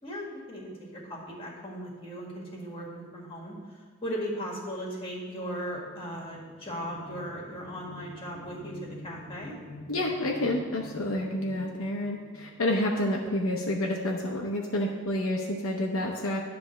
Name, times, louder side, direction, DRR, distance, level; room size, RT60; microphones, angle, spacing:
voice 1, 0.0-9.5, equal, 25° left, -3 dB, 1.8 m, -37 dB
sound 1, 5.7-13.2, left 2 dB, 40° left, 1.4 m, -47 dB
voice 2, 9.9-16.4, left 1 dB, 70° left, -1 dB, 0.8 m, -29 dB
10.0 x 3.4 x 6.5 m, 1.5 s
head